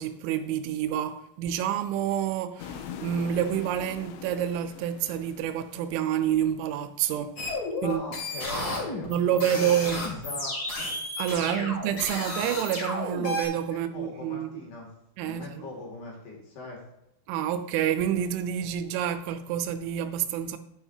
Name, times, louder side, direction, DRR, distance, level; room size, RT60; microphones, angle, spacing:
voice 1, 0.0-7.4 7.8-8.0 9.1-10.1 11.2-14.7 15.2-15.6 17.3-20.6, right 10 dB, 85° right, 3.1 m, -28 dB
sound 1, 2.6-6.9, left 8 dB, 85° left, 3.1 m, -43 dB
sound 2, 7.4-13.4, left 2 dB, 35° left, 2.7 m, -32 dB
voice 2, 7.8-10.6 11.3-11.7 13.7-14.9 15.2-16.8, left 2 dB, 60° left, 4.3 m, -41 dB
9.9 x 9.3 x 2.8 m
omnidirectional pair, 5.4 m